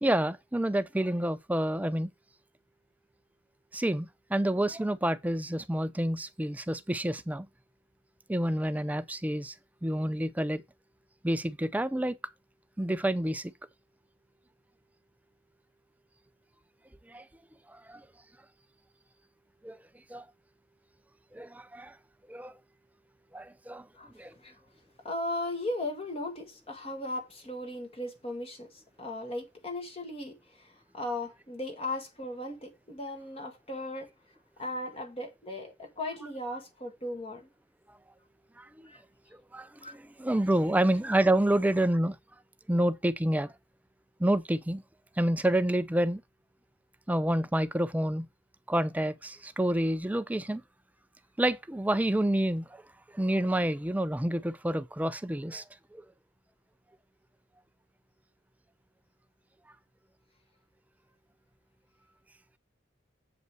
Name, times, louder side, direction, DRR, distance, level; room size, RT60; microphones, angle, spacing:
voice 1, 0.0-2.1 3.7-7.5 8.3-9.5 9.8-10.6 11.2-12.2 12.8-13.5 17.1-17.3 17.7-18.0 19.6-19.8 20.1-20.3 21.3-22.0 22.3-22.6 23.3-23.9 24.1-24.3 37.9-38.0 38.6-38.9 39.5-42.2 42.7-43.5 44.2-44.8 45.2-46.2 47.1-48.3 48.7-50.6 51.4-52.8 53.1-55.6 55.9-56.0, right 1 dB, 10° right, 0.4 m, -28 dB
voice 2, 25.0-34.1 34.6-37.5 38.8-39.0 39.8-39.9, left 1 dB, 30° left, 1.8 m, -37 dB
8.0 x 5.4 x 4.8 m
head